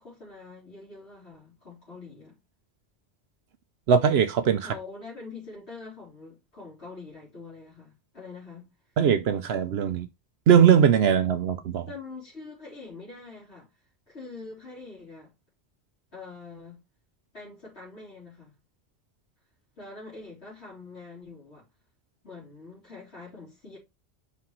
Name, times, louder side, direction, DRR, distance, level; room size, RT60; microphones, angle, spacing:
voice 1, 0.0-2.4 4.6-8.7 11.9-13.7 14.1-15.3 16.1-16.8 17.3-18.5 19.8-21.7 22.2-23.8, left 3 dB, 80° left, 3.6 m, -44 dB
voice 2, 3.9-4.7 9.0-10.1 10.5-11.9, right 8 dB, 75° right, 0.9 m, -20 dB
5.9 x 5.8 x 3.0 m
omnidirectional pair, 1.1 m